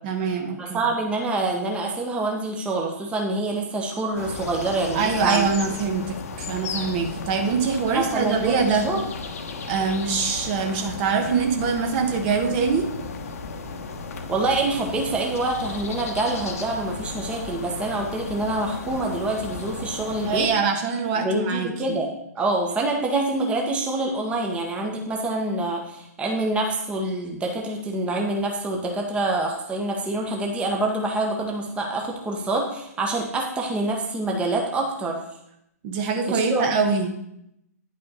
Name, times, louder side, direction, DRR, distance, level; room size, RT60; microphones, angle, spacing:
voice 1, 0.0-0.8 4.9-8.8 9.7-12.9 20.2-22.0 35.8-37.1, right 5 dB, 35° right, 4 dB, 1.1 m, -24 dB
voice 2, 0.6-5.5 7.9-9.0 14.3-20.5 21.2-35.2 36.3-36.7, right 2 dB, 10° right, 0 dB, 1.1 m, -26 dB
sound 1, 4.2-20.5, left 4 dB, 60° left, 1.0 m, -35 dB
9.9 x 5.4 x 4.1 m, 0.78 s
hypercardioid pair, 130°, 9 cm